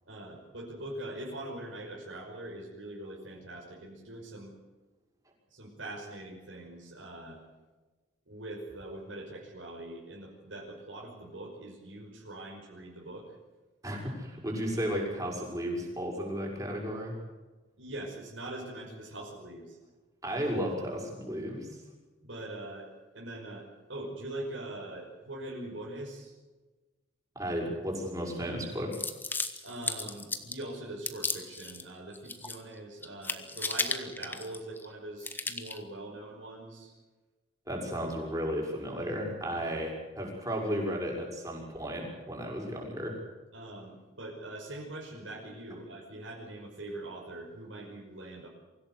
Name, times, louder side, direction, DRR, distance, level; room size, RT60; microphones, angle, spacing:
voice 1, 0.1-4.5 5.5-7.4 8.3-13.3 17.8-19.8 20.3-20.6 22.2-26.3 29.6-36.9 43.5-48.5, right 1 dB, 75° right, -2 dB, 5.7 m, -42 dB
voice 2, 13.8-17.1 20.2-21.8 27.3-29.0 37.7-43.2, equal, 20° right, 0 dB, 6.4 m, -34 dB
sound 1, 28.9-30.6 31.1-31.8 32.1-32.8 33.0-34.9 35.2-35.8, left 3 dB, 10° left, 1.4 m, -35 dB
24.5 x 16.5 x 8.2 m, 1.2 s
head